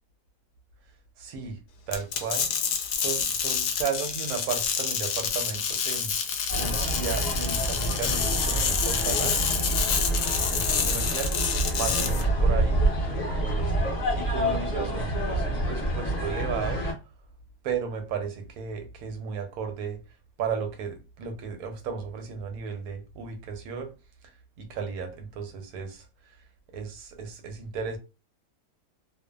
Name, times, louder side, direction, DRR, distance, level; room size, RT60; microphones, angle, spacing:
voice 1, 1.2-1.6 1.9-2.5 2.9-6.1 6.6-9.4 10.5-11.3 11.8-12.9 13.4-16.9 17.6-20.0 20.4-23.9 24.6-26.1 26.7-28.0, right 5 dB, 70° right, 1.0 m, -34 dB
sound 1, 1.9-12.2, left 7 dB, 80° left, 1.2 m, -28 dB
sound 2, 6.5-16.9, right 1 dB, 30° left, 1.0 m, -27 dB
2.5 x 2.3 x 2.2 m
omnidirectional pair, 1.8 m